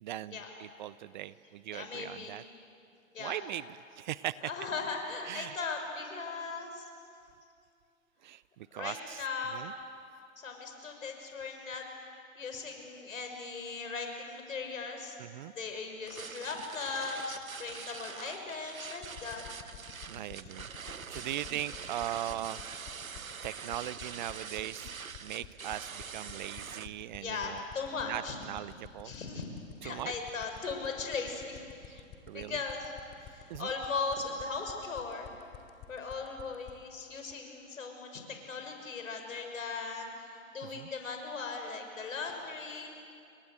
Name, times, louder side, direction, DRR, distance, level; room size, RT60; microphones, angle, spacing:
voice 1, 0.0-2.4 3.2-3.6 4.0-4.5 5.2-5.6 8.2-9.2 9.5-9.7 15.2-15.5 20.1-22.6 23.4-24.9 25.2-27.6 28.1-28.2 28.5-29.1 29.8-30.1 32.3-32.5 33.5-33.7 40.7-40.9, right 13 dB, 35° right, 18 dB, 0.6 m, -39 dB
voice 2, 1.7-2.4 3.1-3.4 4.4-6.9 8.7-9.7 10.4-11.8 12.4-15.2 15.5-19.4 20.4-20.5 27.2-28.4 29.0-29.5 29.8-32.0 32.3-32.9 33.2-35.3 35.9-42.9, left 4 dB, 70° left, 4 dB, 6.1 m, -38 dB
sound 1, 16.1-26.9, right 6 dB, 85° right, 1.1 m, -44 dB
sound 2, 19.0-36.7, left 15 dB, 35° left, 3.4 m, -47 dB
29.5 x 23.5 x 8.0 m, 2.4 s
figure-of-eight pair, 115°, 41 cm